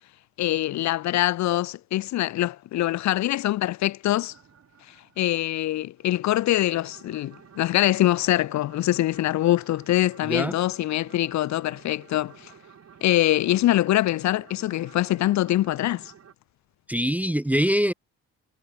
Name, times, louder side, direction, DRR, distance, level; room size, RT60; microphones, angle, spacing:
voice 1, 0.4-4.3 5.2-12.5 13.0-16.0, left 15 dB, 65° left, 0.6 m, -24 dB
sound 1, 4.1-5.6 6.0-16.3, right 8 dB, 50° right, 7.2 m, -52 dB
voice 2, 16.9-17.9, equal, 5° right, 0.4 m, -23 dB
cardioid pair, 90°, 30 cm